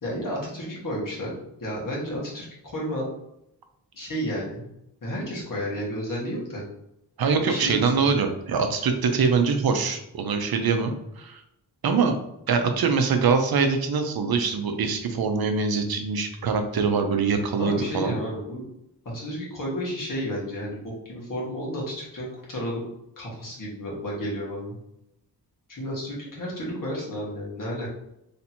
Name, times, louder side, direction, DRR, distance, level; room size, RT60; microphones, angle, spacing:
voice 1, 0.0-1.3 1.6-3.1 3.9-4.7 5.0-6.6 7.3-8.0 17.6-18.6 19.1-22.9 23.2-24.8 25.7-27.9, equal, 50° left, -5 dB, 1.5 m, -32 dB
voice 2, 7.2-11.4 11.8-12.2 12.5-18.2, right 5 dB, 60° right, 6 dB, 0.6 m, -23 dB
3.3 x 2.7 x 4.3 m, 0.81 s
wide cardioid pair, 160°, 40 cm